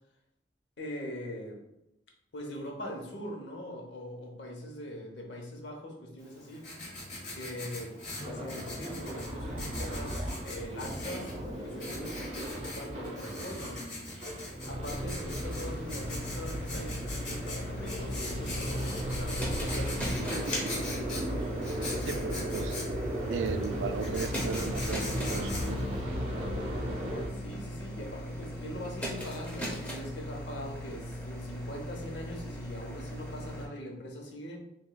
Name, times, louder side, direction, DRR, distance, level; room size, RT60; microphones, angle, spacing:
voice 1, 0.8-1.6 2.3-6.7 7.3-8.0 8.2-13.8 14.7-21.5 27.3-34.6, equal, 75° left, 1 dB, 0.8 m, -42 dB
Writing, 6.2-26.0, left 2 dB, 40° left, 1.2 m, -41 dB
sound 1, 8.2-27.3, equal, 35° right, 0.6 m, -36 dB
sound 2, 15.2-33.7, equal, 5° left, 0.6 m, -40 dB
voice 2, 22.1-22.8 23.3-25.5, right 5 dB, 90° right, 10 dB, 0.3 m, -36 dB
6.1 x 2.3 x 2.2 m, 0.86 s
head